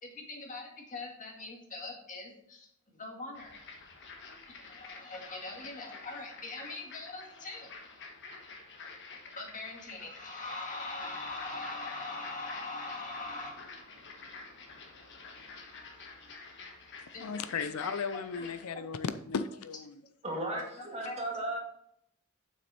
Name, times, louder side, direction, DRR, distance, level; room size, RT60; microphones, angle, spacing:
voice 1, 0.0-2.7 2.9-3.6 4.5-7.7 9.4-17.3 17.5-18.8 20.3-21.2, left 2 dB, 35° left, 2.0 m, -43 dB
sound 1, 3.3-18.7, left 4 dB, 55° left, 1.4 m, -49 dB
voice 2, 17.2-20.0, left 5 dB, 80° left, 0.5 m, -35 dB
voice 3, 20.2-21.6, right 1 dB, 30° right, 2.0 m, -35 dB
7.8 x 6.2 x 4.2 m
head